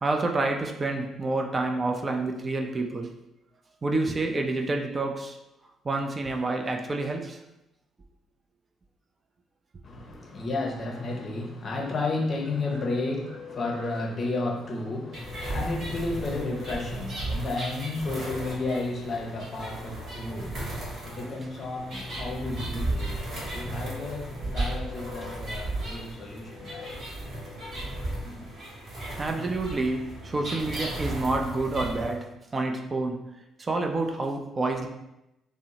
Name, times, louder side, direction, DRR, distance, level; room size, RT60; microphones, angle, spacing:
voice 1, 0.0-3.1 3.8-5.4 5.8-7.4 29.2-33.2 33.6-34.9, right 2 dB, 30° right, 3 dB, 0.3 m, -28 dB
voice 2, 9.8-27.0 28.2-28.5, left 2 dB, 40° left, 1 dB, 0.5 m, -32 dB
sound 1, 10.8-30.4, left 5 dB, 80° right, 0.9 m, -48 dB
sound 2, 15.1-32.1, right 1 dB, 50° right, 1.0 m, -35 dB
2.6 x 2.0 x 2.8 m, 0.90 s
figure-of-eight pair, 45°, 0 cm